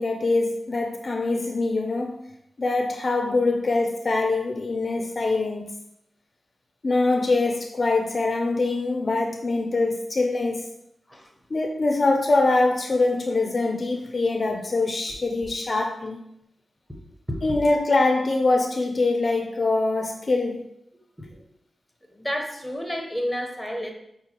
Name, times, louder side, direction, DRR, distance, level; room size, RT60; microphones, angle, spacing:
voice 1, 0.0-2.2 2.6-5.7 6.8-10.7 11.5-16.2 17.4-20.6, left 3 dB, 45° left, 3 dB, 0.4 m, -23 dB
voice 2, 21.2-21.5 22.1-23.9, equal, ahead, 2 dB, 0.7 m, -31 dB
5.1 x 2.3 x 2.8 m, 0.77 s
cardioid pair, 75°, 0 cm